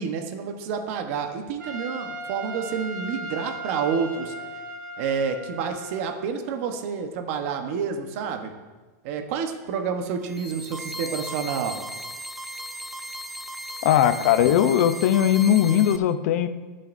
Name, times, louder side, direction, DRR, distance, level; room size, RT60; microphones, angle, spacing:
voice 1, 0.0-4.3 5.0-8.5 9.0-11.8, right 6 dB, 50° right, 5 dB, 1.1 m, -29 dB
Trumpet, 1.6-6.2, equal, 85° right, 1.2 m, -37 dB
sound 1, 10.2-16.0, equal, ahead, 0.4 m, -36 dB
voice 2, 13.8-16.5, left 10 dB, 60° left, 10 dB, 0.7 m, -19 dB
21.0 x 7.7 x 2.7 m, 1.3 s
supercardioid pair, 160°, 10 cm